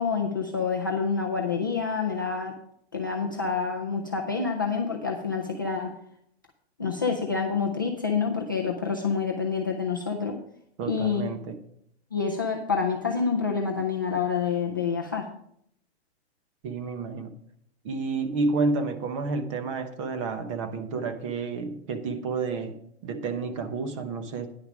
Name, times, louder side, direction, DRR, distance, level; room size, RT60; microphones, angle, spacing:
voice 1, 0.0-2.5 2.9-5.9 6.8-10.4 10.9-11.2 12.1-15.3, left 5 dB, 20° left, -1 dB, 0.3 m, -27 dB
voice 2, 10.8-11.6 16.6-17.3 17.8-22.7 23.0-24.5, right 4 dB, 30° right, 8 dB, 1.0 m, -30 dB
10.0 x 6.5 x 5.0 m, 0.69 s
hypercardioid pair, 170°, 33 cm